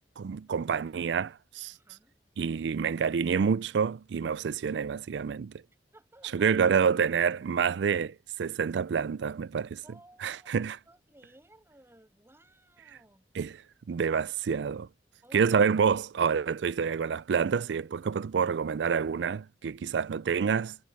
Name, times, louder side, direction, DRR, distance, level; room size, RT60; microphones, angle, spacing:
voice 1, 0.2-1.7 2.4-5.5 6.3-9.8 10.2-10.8 13.4-13.5 13.9-14.9 15.3-20.8, right 6 dB, 80° right, 0.4 m, -28 dB
voice 2, 1.7-2.2 5.9-6.5 9.8-13.3 15.2-15.6, right 1 dB, 15° right, 6.8 m, -58 dB
head